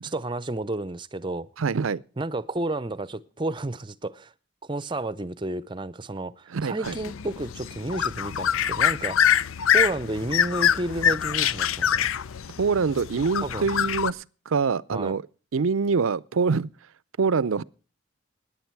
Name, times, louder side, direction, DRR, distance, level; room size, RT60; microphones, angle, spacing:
voice 1, 0.0-1.5 2.2-4.3 4.6-9.2 9.7-12.1 13.4-13.7 14.9-15.1, right 2 dB, 25° right, 0.6 m, -31 dB
voice 2, 1.6-2.0 6.5-6.9 12.6-15.2 15.5-16.7 17.2-17.6, right 5 dB, 85° right, 0.5 m, -25 dB
sound 1, 6.8-14.1, left 9 dB, 90° left, 0.5 m, -25 dB
18.0 x 10.0 x 4.6 m
head